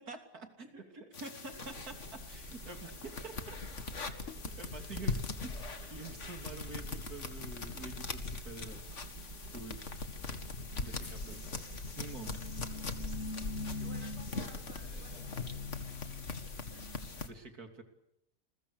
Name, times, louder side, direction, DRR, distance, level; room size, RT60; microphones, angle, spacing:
voice 1, 0.0-3.6 4.6-8.9 9.5-9.9 10.8-11.7 12.0-12.4 14.8-15.3 17.2-17.8, right 3 dB, 65° right, 5 dB, 3.5 m, -47 dB
voice 2, 0.6-1.7 2.6-2.7 4.7-5.0 9.4-9.8 11.2-11.6 12.2-12.7 13.2-17.1 17.4-17.5, right 1 dB, 85° right, 4 dB, 6.8 m, -60 dB
sound 1, 1.1-17.3, left 4 dB, 50° left, 2.2 m, -41 dB
sound 2, 1.6-15.8, right 2 dB, 30° right, 1.5 m, -50 dB
sound 3, 5.8-8.5 8.8-8.9 10.0-17.1, left 3 dB, 75° left, 4.9 m, -59 dB
29.5 x 21.5 x 6.8 m, 0.83 s
omnidirectional pair, 1.7 m